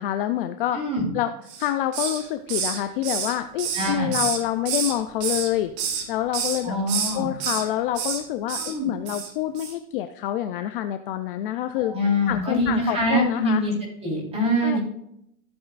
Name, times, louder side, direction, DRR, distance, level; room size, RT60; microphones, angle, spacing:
voice 1, 0.0-0.8 1.1-1.3 1.6-5.7 6.1-6.8 7.1-11.9 12.3-13.6 14.6-14.8, left 12 dB, 40° left, 9 dB, 0.4 m, -27 dB
voice 2, 0.7-1.1 3.7-4.2 6.6-7.3 8.5-8.9 11.8-13.7 14.0-14.8, equal, 15° right, -4 dB, 3.8 m, -24 dB
Hiss, 1.5-2.2 2.5-4.9 5.2-6.0 6.3-6.6 6.9-7.6 7.9-8.2 8.5-8.7 9.1-9.3 9.6-9.7, right 7 dB, 45° right, 2.1 m, -28 dB
14.5 x 7.9 x 2.4 m, 0.79 s
supercardioid pair, 165°, 43 cm